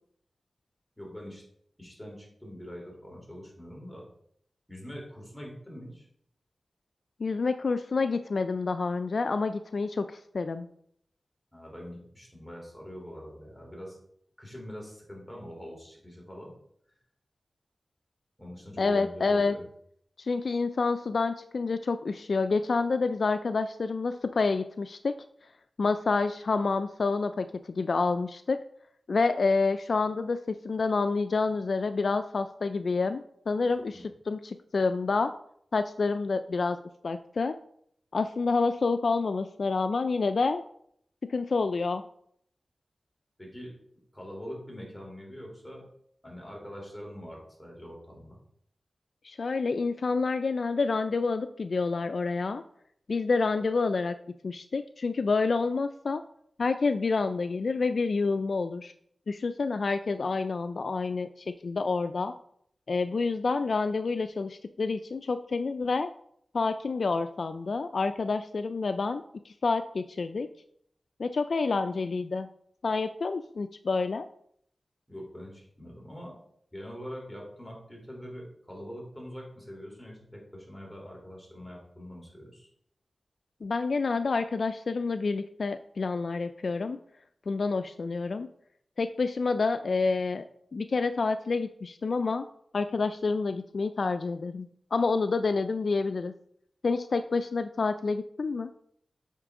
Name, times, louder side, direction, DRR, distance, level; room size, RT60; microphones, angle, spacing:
voice 1, 1.0-1.4 1.8-4.0 4.7-6.1 11.5-14.0 14.4-16.5 18.4-19.7 33.9-34.0 43.4-43.7 44.1-45.8 46.2-48.4 75.1-76.3 76.7-82.7, equal, 5° left, -2 dB, 3.4 m, -43 dB
voice 2, 7.2-10.7 18.8-19.5 20.2-25.1 25.8-28.6 29.1-35.3 35.7-36.8 37.0-37.5 38.1-40.6 41.2-42.0 49.2-52.6 53.1-54.2 54.4-56.2 56.6-58.9 59.3-62.3 62.9-66.1 66.5-70.5 71.2-72.5 72.8-74.3 83.6-87.0 87.5-88.5 89.0-90.4 90.7-92.4 92.7-96.3 96.8-98.7, left 4 dB, 70° left, 10 dB, 0.3 m, -28 dB
8.2 x 5.8 x 3.7 m, 0.68 s
wide cardioid pair, 80°, 0 cm